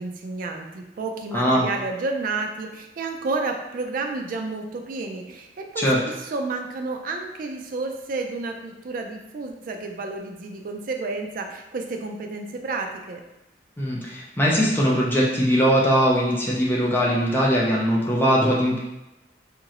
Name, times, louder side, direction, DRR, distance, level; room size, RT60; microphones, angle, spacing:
voice 1, 0.0-5.9 6.2-13.2, right 3 dB, 50° right, 4 dB, 0.4 m, -31 dB
voice 2, 1.3-1.7 5.8-6.0 13.8-18.8, equal, 10° left, -5 dB, 0.5 m, -20 dB
3.0 x 2.5 x 2.8 m, 0.97 s
head